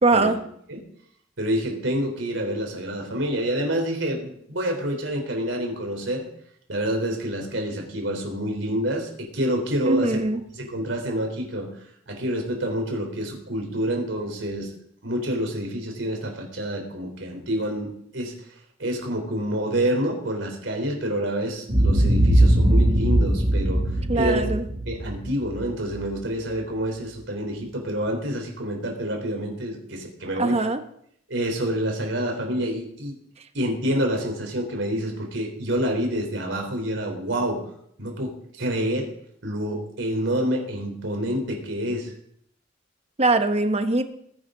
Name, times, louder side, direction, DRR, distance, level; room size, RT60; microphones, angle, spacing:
voice 1, 0.0-0.4 9.9-10.4 24.1-24.6 30.4-30.8 43.2-44.0, right 2 dB, 35° right, 8 dB, 1.0 m, -21 dB
voice 2, 1.4-6.2 6.7-10.2 10.5-11.7 12.1-14.7 15.0-18.3 18.8-23.8 24.2-24.5 24.9-30.6 31.3-33.1 33.5-37.6 38.0-39.1 39.4-42.1, equal, 70° right, 2 dB, 3.9 m, -27 dB
Boom, 21.7-26.0, right 1 dB, 50° right, 3.9 m, -20 dB
20.0 x 10.5 x 3.9 m, 0.70 s
head